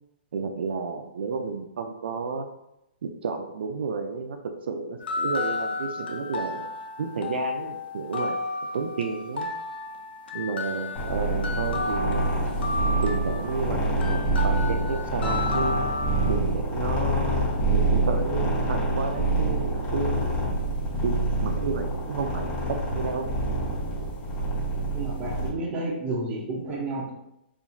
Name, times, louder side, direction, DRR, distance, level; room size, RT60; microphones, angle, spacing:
voice 1, 0.3-2.5 3.0-6.7 7.0-8.4 8.7-9.5 10.3-12.2 13.0-15.8 16.3-20.6 21.0-21.2 21.4-23.3, right 4 dB, 75° right, 5 dB, 0.3 m, -31 dB
sound 1, 5.0-16.3, left 3 dB, 70° left, 0.5 m, -32 dB
sound 2, 10.9-25.5, right 2 dB, 35° left, 1.1 m, -26 dB
voice 2, 24.9-27.1, right 2 dB, 20° right, -4 dB, 0.7 m, -31 dB
2.7 x 2.4 x 2.6 m, 0.83 s
hypercardioid pair, 150°, 6 cm